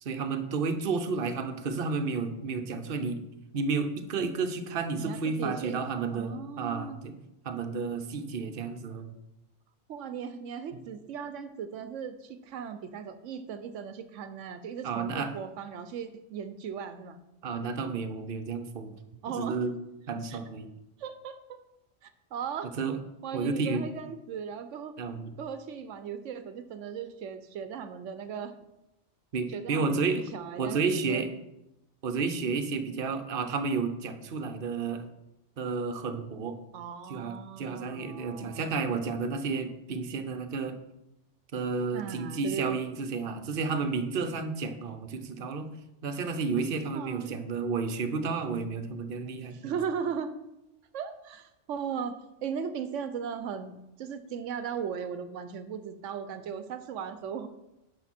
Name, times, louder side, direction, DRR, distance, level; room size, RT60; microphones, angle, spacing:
voice 1, 0.0-3.2 3.5-7.1 7.4-9.1 14.8-15.3 17.4-18.9 19.4-19.7 20.1-20.7 22.8-23.0 23.3-23.8 25.0-25.3 29.3-30.3 30.6-31.3 32.0-35.0 35.6-36.6 37.1-40.7 41.5-45.7 46.0-49.7, right 4 dB, 55° right, 8 dB, 1.0 m, -31 dB
voice 2, 5.0-5.8 6.1-7.0 9.9-17.2 19.2-19.6 20.3-20.4 21.0-21.6 22.0-22.7 23.2-24.9 25.4-28.5 29.5-31.3 36.7-38.6 41.9-42.8 46.9-47.4 49.5-50.3 50.9-57.5, right 7 dB, 85° right, 11 dB, 1.0 m, -37 dB
11.0 x 6.8 x 4.3 m, 0.90 s
omnidirectional pair, 1.2 m